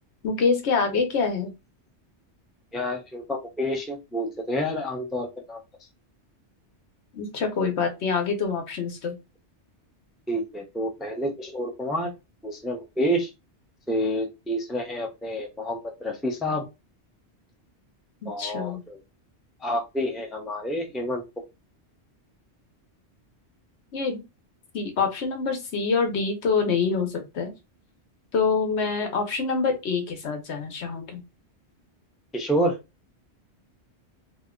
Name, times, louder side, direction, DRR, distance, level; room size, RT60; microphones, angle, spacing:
voice 1, 0.2-1.5 7.1-9.2 18.4-18.8 23.9-24.2 24.7-27.5 28.3-31.2, left 5 dB, 75° left, 4 dB, 1.1 m, -26 dB
voice 2, 2.7-5.6 10.3-12.1 12.4-13.3 13.9-16.6 18.3-19.0 19.6-21.2 32.3-32.8, equal, ahead, 1 dB, 0.5 m, -28 dB
2.7 x 2.2 x 3.6 m, 0.25 s
omnidirectional pair, 1.2 m